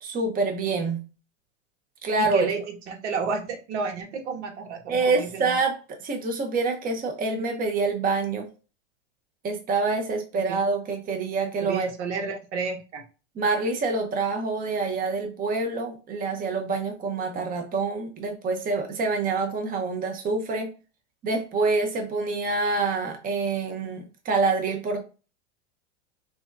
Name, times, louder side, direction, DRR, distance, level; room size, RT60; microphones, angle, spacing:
voice 1, 0.0-1.0 2.0-2.5 4.9-8.5 9.4-11.9 13.4-20.7 21.2-25.0, right 3 dB, 25° right, 3 dB, 0.9 m, -26 dB
voice 2, 2.2-5.6 10.5-10.6 11.6-13.0, right 5 dB, 70° right, 4 dB, 1.3 m, -31 dB
6.0 x 2.4 x 2.6 m, 0.33 s
hypercardioid pair, 115°, 36 cm